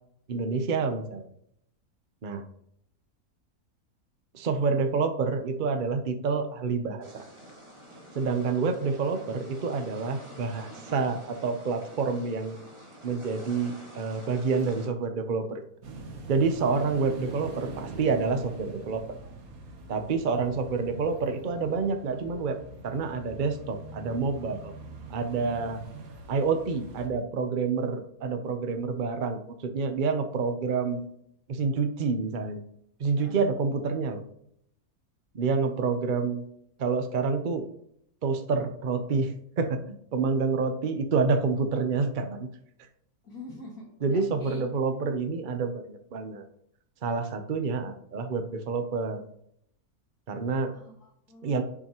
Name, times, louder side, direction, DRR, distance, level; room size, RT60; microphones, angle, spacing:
voice 1, 0.3-1.3 2.2-2.4 4.3-7.2 8.1-12.6 13.0-15.6 16.3-19.0 19.9-22.6 22.8-24.7 25.1-25.8 26.3-31.1 31.5-32.6 33.0-34.2 35.3-36.4 36.8-37.7 38.2-39.8 40.1-42.5 44.0-46.4 47.0-49.2 50.3-50.7 51.4-51.6, right 4 dB, 40° right, 7 dB, 0.8 m, -28 dB
sound 1, 7.0-14.9, right 1 dB, 20° right, 1.9 m, -48 dB
sound 2, 15.8-27.1, right 3 dB, 70° right, 1.6 m, -43 dB
voice 2, 43.2-44.7 50.7-51.6, left 1 dB, 75° left, -3 dB, 2.5 m, -45 dB
11.0 x 6.3 x 3.0 m, 0.72 s
omnidirectional pair, 1.6 m